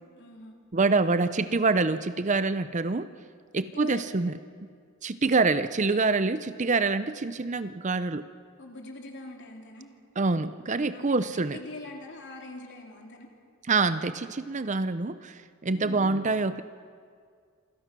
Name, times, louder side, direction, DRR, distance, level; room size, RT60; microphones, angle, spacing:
voice 1, 0.1-0.6 3.6-4.2 8.6-9.9 10.9-13.3 15.8-16.1, left 2 dB, 55° left, 1 dB, 3.7 m, -43 dB
voice 2, 0.7-3.1 3.5-4.7 5.0-8.2 10.2-11.6 13.7-16.6, right 3 dB, 35° right, 13 dB, 0.6 m, -26 dB
27.5 x 25.0 x 6.1 m, 2.1 s
head